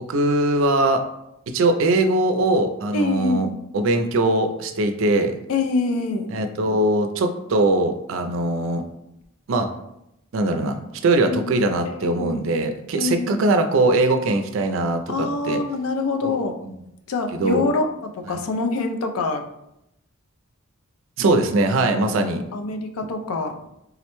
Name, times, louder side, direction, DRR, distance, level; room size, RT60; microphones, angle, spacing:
voice 1, 0.1-1.0 1.5-3.5 3.7-5.4 6.3-8.8 9.5-9.7 10.3-15.6 17.4-17.7 21.2-22.4, right 2 dB, 65° right, 6 dB, 0.4 m, -21 dB
voice 2, 2.9-3.6 5.5-6.3 11.2-12.5 12.9-13.4 15.1-16.5 17.1-17.9 18.1-19.5 22.0-22.2 22.5-23.6, left 3 dB, 80° left, 5 dB, 0.4 m, -25 dB
3.7 x 2.1 x 2.9 m, 0.83 s
head